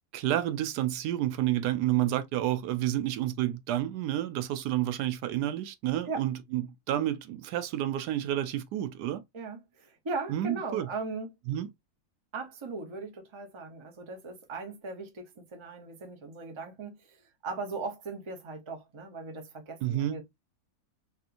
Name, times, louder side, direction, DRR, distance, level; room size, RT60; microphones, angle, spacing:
voice 1, 0.1-9.2 10.3-10.9 11.5-11.7 19.8-20.2, right 13 dB, 85° right, 1.2 m, -30 dB
voice 2, 9.3-11.3 12.3-20.2, right 3 dB, 30° right, 0.5 m, -38 dB
3.4 x 2.8 x 2.5 m
omnidirectional pair, 1.7 m